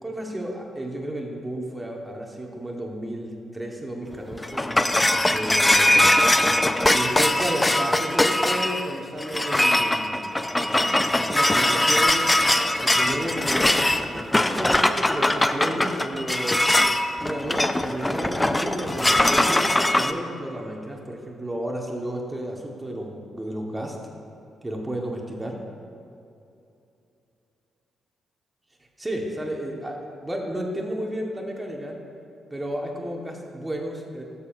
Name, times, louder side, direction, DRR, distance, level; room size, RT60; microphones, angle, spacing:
voice 1, 0.0-4.7 5.3-6.1 6.9-10.3 10.6-12.3 12.8-13.8 14.1-16.6 17.2-24.0 24.6-25.6 29.0-32.0 32.5-34.2, right 1 dB, 20° right, 0 dB, 1.6 m, -32 dB
sound 1, 4.1-20.1, left 1 dB, 15° left, 0.5 m, -21 dB
13.0 x 7.1 x 2.7 m, 2.6 s
hypercardioid pair, 40°, 0 cm